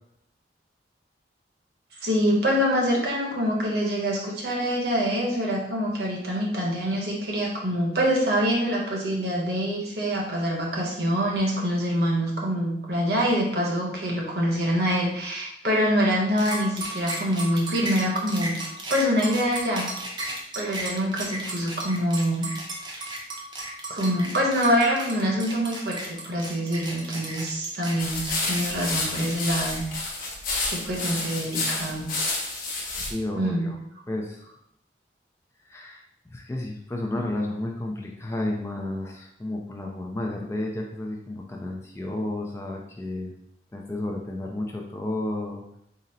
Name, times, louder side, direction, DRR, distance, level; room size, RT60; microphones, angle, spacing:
voice 1, 2.0-18.6 18.9-19.9 20.5-22.5 22.9-23.1 23.9-29.8 30.6-32.1 33.3-33.7, equal, 60° right, -2 dB, 1.0 m, -25 dB
sound 1, 16.4-29.8, right 2 dB, 25° right, 0.6 m, -34 dB
sound 2, 28.0-33.1, left 3 dB, 50° left, 0.8 m, -30 dB
voice 2, 33.1-33.8 34.1-34.4 35.6-36.0 36.3-43.3 43.7-45.6, left 1 dB, 15° left, 0 dB, 0.3 m, -32 dB
3.9 x 2.0 x 4.0 m, 0.78 s
head